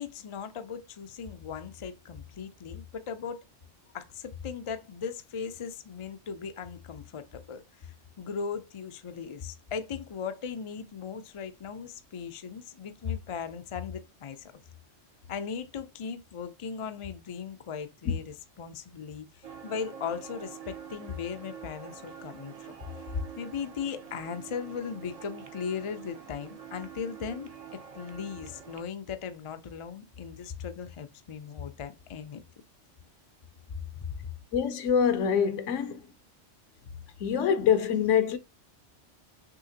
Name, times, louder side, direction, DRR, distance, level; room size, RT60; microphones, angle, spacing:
voice 1, 0.0-3.4 3.9-14.5 15.3-22.6 23.0-32.4 34.0-34.1, left 6 dB, 55° left, 0.3 m, -38 dB
sound 1, 19.4-28.8, right 7 dB, 50° right, 0.4 m, -46 dB
voice 2, 34.5-36.1 37.2-38.4, left 8 dB, 80° left, 1.0 m, -25 dB
6.4 x 2.8 x 2.8 m
omnidirectional pair, 1.3 m